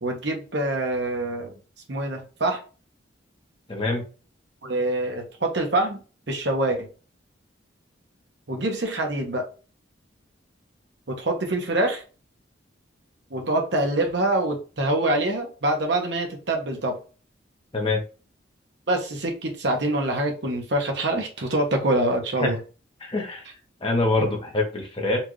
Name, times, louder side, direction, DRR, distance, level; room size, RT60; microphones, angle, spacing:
voice 1, 0.0-1.5 1.9-2.6 4.6-6.0 6.3-6.9 8.5-9.5 11.1-12.0 13.3-17.0 18.9-22.6, right 1 dB, 65° right, 2 dB, 1.0 m, -25 dB
voice 2, 3.7-4.0 17.7-18.0 22.4-22.5 23.0-23.5 23.8-25.2, left 2 dB, 25° left, 1 dB, 1.0 m, -25 dB
4.3 x 2.5 x 3.1 m, 0.35 s
head